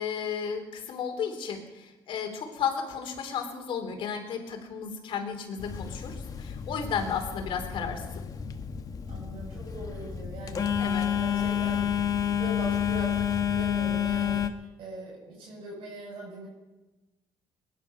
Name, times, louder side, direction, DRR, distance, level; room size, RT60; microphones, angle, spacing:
voice 1, 0.0-8.2 10.8-11.1, left 7 dB, 70° left, 4 dB, 3.0 m, -33 dB
Telephone, 5.6-14.5, left 8 dB, 40° left, 1.0 m, -30 dB
voice 2, 9.1-10.7 11.1-16.5, right 1 dB, 75° right, -5 dB, 6.7 m, -41 dB
21.0 x 10.5 x 5.6 m, 1.1 s
cardioid pair, 105°, 9 cm